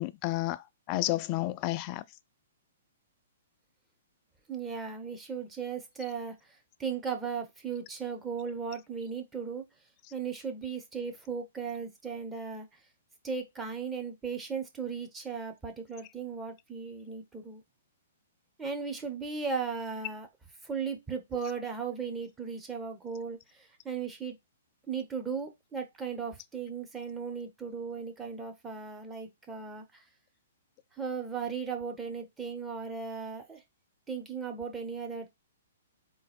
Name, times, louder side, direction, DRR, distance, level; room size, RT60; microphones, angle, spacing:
voice 1, 0.0-2.0, left 17 dB, 35° left, 0.4 m, -31 dB
voice 2, 4.5-9.6 10.1-12.7 13.2-17.6 18.6-20.3 20.6-24.4 24.9-30.0 31.0-33.6 34.1-35.3, right 5 dB, 10° right, 0.9 m, -36 dB
3.9 x 2.5 x 4.2 m
hypercardioid pair, 125°, 0 cm